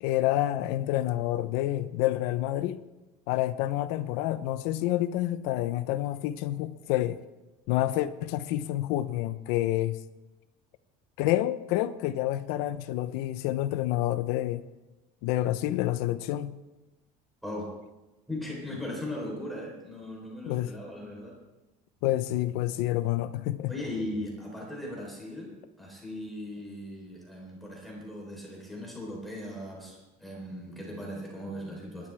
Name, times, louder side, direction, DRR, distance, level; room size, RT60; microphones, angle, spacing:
voice 1, 0.0-2.8 3.3-7.2 7.7-10.0 11.2-14.6 15.2-16.6 20.4-20.7 22.0-23.7, left 14 dB, 85° left, 0.9 m, -28 dB
voice 2, 17.4-17.8 18.3-21.4 23.7-32.1, left 1 dB, ahead, 4.1 m, -38 dB
28.5 x 12.0 x 3.6 m
cardioid pair, 170°, 16 cm